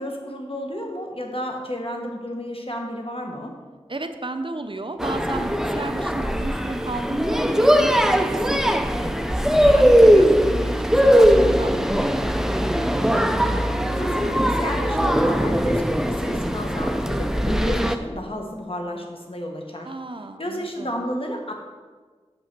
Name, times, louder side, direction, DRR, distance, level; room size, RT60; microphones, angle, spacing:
voice 1, 0.0-3.5 13.1-13.6 13.9-19.9 20.4-21.5, equal, 55° left, 1 dB, 1.3 m, -32 dB
voice 2, 3.9-9.1 9.6-12.3 19.8-21.0, right 2 dB, 50° right, 8 dB, 0.6 m, -33 dB
sound 1, 5.0-18.0, equal, 5° right, 0.5 m, -20 dB
6.8 x 5.4 x 5.9 m, 1.4 s
wide cardioid pair, 40°, 11 cm